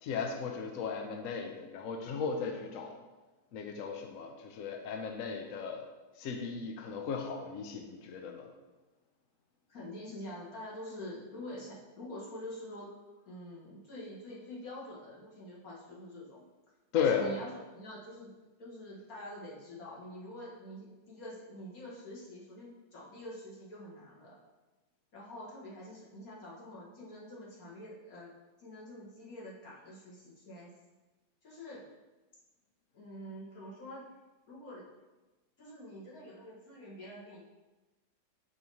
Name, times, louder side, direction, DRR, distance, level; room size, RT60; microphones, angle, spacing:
voice 1, 0.0-2.9 3.5-5.9 6.2-8.5 16.9-17.3, left 6 dB, 75° left, 4 dB, 0.7 m, -35 dB
voice 2, 9.7-12.9 13.3-16.5 16.9-18.3 18.6-24.4 25.1-28.3 28.6-30.7 31.4-31.8 32.9-34.1 34.5-34.8 35.6-37.4, left 1 dB, 50° left, -6 dB, 2.0 m, -46 dB
6.1 x 3.1 x 5.4 m, 1.2 s
omnidirectional pair, 2.1 m